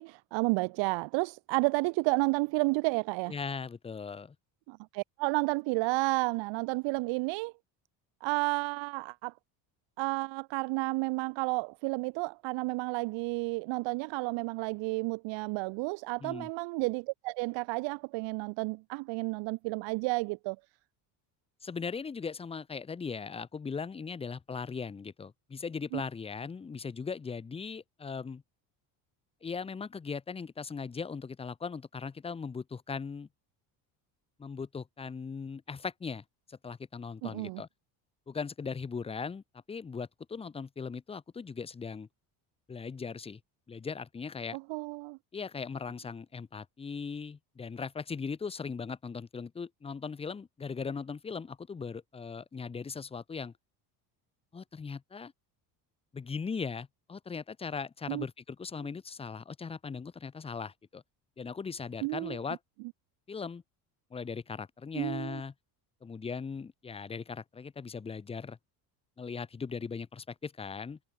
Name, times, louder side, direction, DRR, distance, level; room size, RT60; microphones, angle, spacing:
voice 1, 0.0-3.3 4.7-7.5 8.2-9.3 10.0-20.6 25.9-26.0 37.2-37.6 44.5-45.2 58.1-58.2 62.0-62.4 64.9-65.4, right 26 dB, 75° right, 0.7 m, -31 dB
voice 2, 3.3-4.4 16.2-16.5 21.6-28.4 29.4-33.3 34.4-36.2 36.5-37.7 38.3-42.1 42.7-43.4 43.7-44.6 45.3-53.5 54.5-55.3 56.1-61.0 61.4-62.6 63.3-63.6 64.1-65.5 66.0-68.6 69.2-71.0, left 5 dB, 15° left, 0.5 m, -39 dB
cardioid pair, 115°, 45 cm